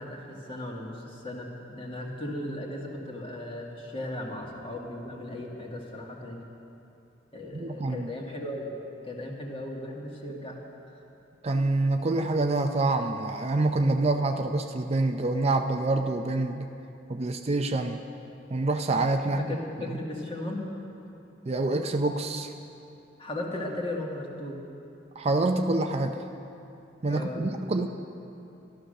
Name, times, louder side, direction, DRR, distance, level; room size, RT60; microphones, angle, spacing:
voice 1, 0.0-6.4 7.3-8.7 9.0-10.6 19.4-20.7 23.2-24.6 27.1-27.9, left 1 dB, 30° left, -1 dB, 1.9 m, -36 dB
voice 2, 7.5-8.1 11.4-16.7 17.1-18.0 18.5-19.5 21.5-22.5 25.2-26.3 27.0-27.9, right 2 dB, 35° right, 6 dB, 0.5 m, -26 dB
13.0 x 12.5 x 6.5 m, 2.8 s
head